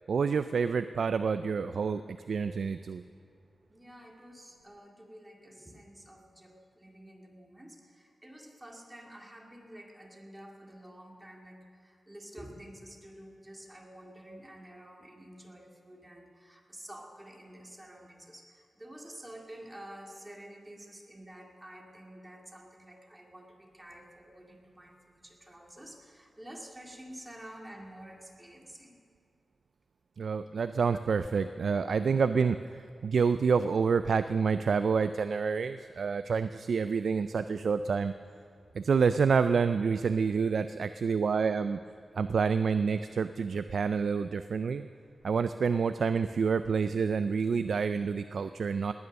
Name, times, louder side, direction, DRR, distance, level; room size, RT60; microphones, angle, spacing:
voice 1, 0.1-3.0 30.2-38.1 38.7-41.8 42.2-44.9 45.2-48.9, right 5 dB, 75° right, 11 dB, 0.4 m, -28 dB
voice 2, 3.7-29.0 30.5-31.0 33.0-33.2, right 1 dB, 15° right, 1 dB, 2.2 m, -50 dB
19.0 x 9.6 x 6.4 m, 2.4 s
wide cardioid pair, 90°, 0 cm